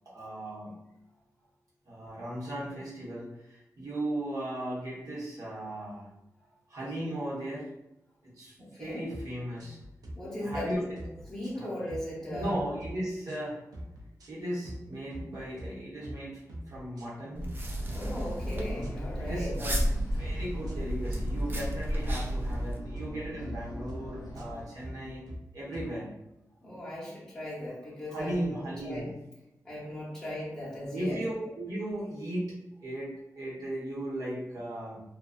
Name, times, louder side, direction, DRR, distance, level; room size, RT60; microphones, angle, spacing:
voice 1, 0.0-0.8 1.9-6.1 6.7-7.7 8.2-9.8 10.4-11.0 11.5-11.7 12.3-13.6 14.3-16.4 16.7-17.5 19.1-19.8 20.1-25.3 25.5-26.2 28.1-29.1 30.9-32.5 32.8-35.0, right 1 dB, 70° right, -7 dB, 1.0 m, -36 dB
voice 2, 8.6-9.0 10.1-10.8 11.3-12.6 17.9-19.5 26.6-29.1 29.6-31.2, left 1 dB, 10° left, -7 dB, 0.9 m, -37 dB
sound 1, 9.1-9.3 9.6-10.1 10.5-10.7 11.0-12.1 12.3-12.9 13.3-13.4 13.7-14.3 14.6-14.8 15.1-15.7 16.0-16.2 16.5-17.1 17.4-17.6 17.9-18.5 18.8-19.8 20.2-20.4 20.6-21.2 21.6-21.8 22.0-22.6 23.0-23.1 23.4-24.0 24.3-24.5 24.8-25.4 25.7-25.9, equal, 90° right, 0.5 m, -43 dB
sound 2, 17.4-22.8, equal, 35° right, 0.4 m, -32 dB
sound 3, 17.6-24.7, equal, 80° left, 0.5 m, -40 dB
2.5 x 2.2 x 2.4 m, 0.89 s
wide cardioid pair, 120°, 6 cm